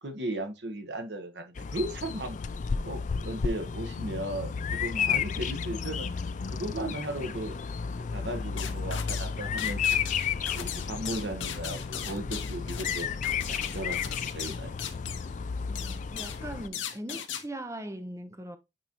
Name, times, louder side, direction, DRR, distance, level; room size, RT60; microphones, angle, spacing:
voice 1, 0.0-2.4 2.8-6.1 6.5-7.6 8.1-10.0 10.5-13.1 13.5-14.7, right 1 dB, 65° right, 1.2 m, -36 dB
Bird vocalization bird call bird song, 1.5-16.7, left 6 dB, 40° left, 0.3 m, -32 dB
sound 1, 8.6-9.3 9.6-15.3 15.7-16.4 16.7-17.4, left 9 dB, 80° left, 0.8 m, -38 dB
voice 2, 15.7-18.6, right 1 dB, 15° right, 0.7 m, -40 dB
9.0 x 4.0 x 3.0 m
head